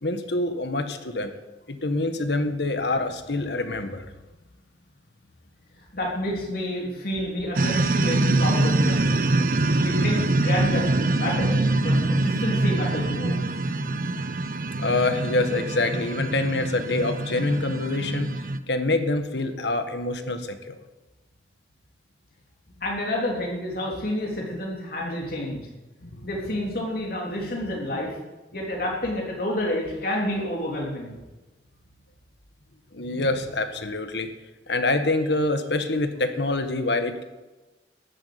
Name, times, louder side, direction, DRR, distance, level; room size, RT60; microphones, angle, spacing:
voice 1, 0.0-1.3 1.7-4.1 14.8-18.3 18.7-20.7 26.0-26.3 32.9-34.3 34.7-37.2, left 2 dB, 70° left, 8 dB, 1.6 m, -26 dB
voice 2, 5.9-13.4 22.8-25.6 26.2-28.2 28.5-31.2, left 1 dB, 55° left, -2 dB, 3.5 m, -29 dB
sound 1, 7.6-18.6, right 2 dB, 50° right, 0.8 m, -24 dB
13.5 x 9.1 x 9.4 m, 1.1 s
head